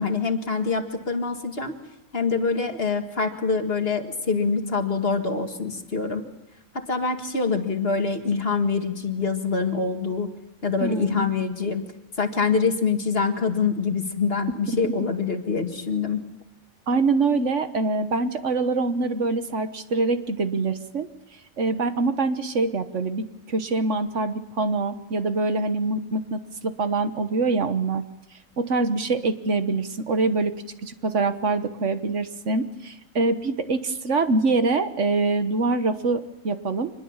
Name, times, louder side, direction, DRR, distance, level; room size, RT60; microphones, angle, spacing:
voice 1, 0.0-1.7 2.1-6.2 6.7-10.3 10.6-11.8 12.2-16.2, left 4 dB, 50° left, 5 dB, 2.1 m, -25 dB
voice 2, 10.8-11.3 14.7-14.9 16.9-21.1 21.6-28.1 28.6-30.5 30.8-36.9, right 3 dB, 65° right, 9 dB, 1.5 m, -24 dB
25.5 x 21.0 x 7.3 m, 0.94 s
omnidirectional pair, 1.4 m